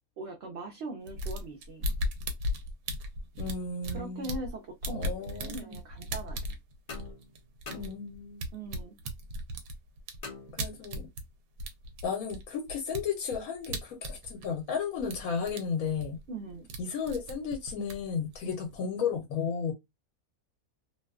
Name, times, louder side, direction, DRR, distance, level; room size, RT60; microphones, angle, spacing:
voice 1, 0.2-1.9 3.9-6.4 8.5-9.0 16.3-16.7 18.4-18.6, right 2 dB, 60° right, 0.8 m, -41 dB
sound 1, 1.1-4.5 4.8-11.3 11.6-14.7 15.0-15.6 15.9-16.8 17.1-18.7, equal, 90° right, 1.1 m, -36 dB
voice 2, 3.4-4.3 4.9-5.8 7.7-8.4 10.5-11.1 12.0-16.2 16.8-19.7, left 6 dB, 75° left, 1.1 m, -34 dB
sound 2, 6.9-8.5 10.2-11.2, left 3 dB, 40° left, 0.6 m, -46 dB
2.6 x 2.2 x 2.3 m
omnidirectional pair, 1.5 m